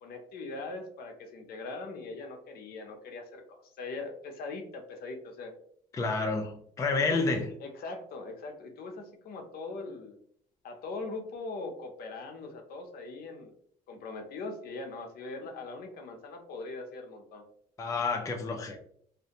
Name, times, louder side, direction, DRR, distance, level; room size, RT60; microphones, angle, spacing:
voice 1, 0.0-5.5 6.9-7.2 7.6-10.2 10.6-13.5 13.9-17.4, left 3 dB, 65° left, 4 dB, 0.6 m, -41 dB
voice 2, 5.9-7.5 17.8-18.8, left 3 dB, 20° left, 2 dB, 0.3 m, -29 dB
2.5 x 2.1 x 2.7 m, 0.64 s
cardioid pair, 110°, 17 cm